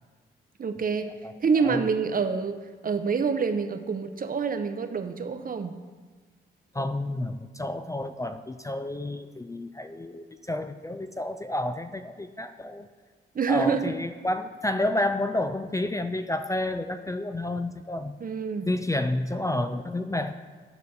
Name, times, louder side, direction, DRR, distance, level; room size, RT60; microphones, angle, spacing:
voice 1, 0.6-1.1 1.4-5.8 13.3-13.9 18.2-18.7, right 5 dB, 45° right, 8 dB, 0.7 m, -27 dB
voice 2, 1.2-1.8 6.7-12.9 13.5-18.1 18.6-20.3, left 1 dB, 15° left, 8 dB, 0.4 m, -30 dB
10.5 x 5.1 x 4.1 m, 1.4 s
cardioid pair, 65°, 21 cm